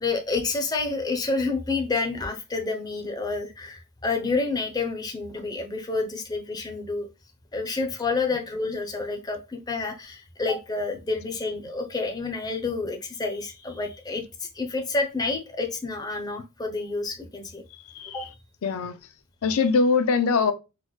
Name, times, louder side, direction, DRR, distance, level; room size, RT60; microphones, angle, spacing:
voice 1, 0.0-7.1 7.5-17.6 18.1-18.3, left 3 dB, 20° left, 0.5 m, -29 dB
voice 2, 18.6-19.0 19.4-20.5, left 4 dB, 80° left, 0.4 m, -22 dB
3.9 x 2.1 x 3.0 m
head